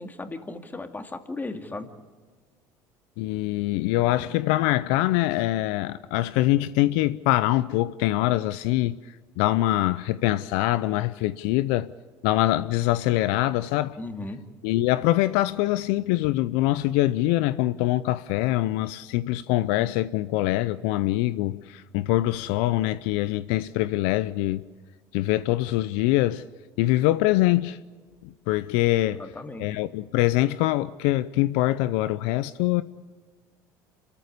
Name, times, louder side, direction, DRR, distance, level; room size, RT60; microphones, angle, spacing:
voice 1, 0.0-1.9 14.0-14.4 29.1-29.8, left 2 dB, 20° left, 2.3 m, -36 dB
voice 2, 3.2-9.0 9.4-11.9 12.2-14.0 14.6-24.6 25.1-26.4 26.8-27.8 28.2-29.2 29.6-32.8, left 16 dB, 75° left, 0.6 m, -24 dB
27.5 x 14.0 x 8.3 m
supercardioid pair, 80°, 10 cm